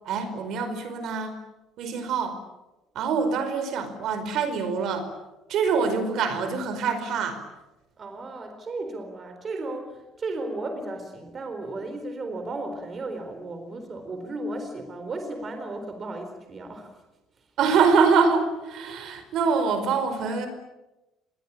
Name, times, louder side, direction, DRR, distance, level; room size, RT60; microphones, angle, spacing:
voice 1, 0.0-1.4 1.8-2.4 2.9-5.1 5.5-7.4 17.6-20.5, right 5 dB, 50° right, 9 dB, 4.9 m, -24 dB
voice 2, 8.0-17.0, right 2 dB, 25° right, 6 dB, 4.1 m, -35 dB
29.5 x 22.5 x 8.7 m, 1.0 s
cardioid pair, 175°, 0 cm